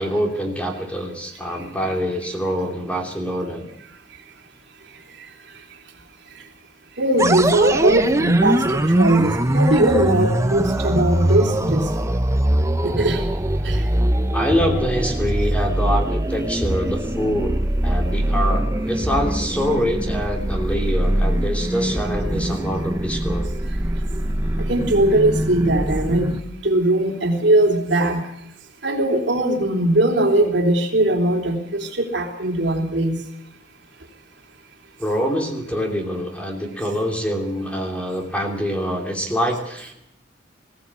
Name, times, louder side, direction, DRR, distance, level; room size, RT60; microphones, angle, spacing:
voice 1, 0.0-3.7 14.3-23.5 35.0-39.9, equal, 5° left, 2 dB, 3.0 m, -25 dB
voice 2, 7.0-11.9 12.8-13.3 13.6-13.9 24.6-28.2 28.8-33.2, right 1 dB, 65° right, 2 dB, 3.4 m, -20 dB
sound 1, 7.2-26.4, right 1 dB, 15° right, 0.8 m, -22 dB
21.0 x 16.0 x 8.4 m, 0.80 s
head